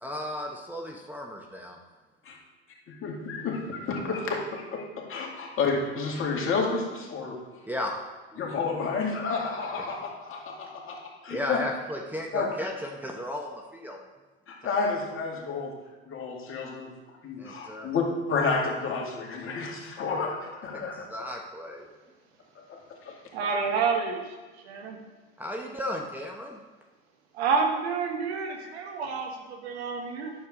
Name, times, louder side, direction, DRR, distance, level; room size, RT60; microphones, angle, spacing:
voice 1, 0.0-1.8 7.6-7.9 8.3-8.5 11.3-14.0 17.4-17.9 20.7-21.9 25.4-26.6 28.6-28.7, left 1 dB, 5° right, -1 dB, 0.9 m, -35 dB
voice 2, 2.9-7.4 8.4-11.6 12.3-12.5 14.5-15.7 16.1-16.9 17.2-21.1 22.7-23.2, left 4 dB, 40° left, -2 dB, 2.3 m, -30 dB
voice 3, 23.3-24.3 24.6-25.0 27.3-30.3, right 5 dB, 85° right, 3 dB, 1.4 m, -29 dB
9.5 x 6.8 x 3.7 m, 1.3 s
hypercardioid pair, 85°, 32 cm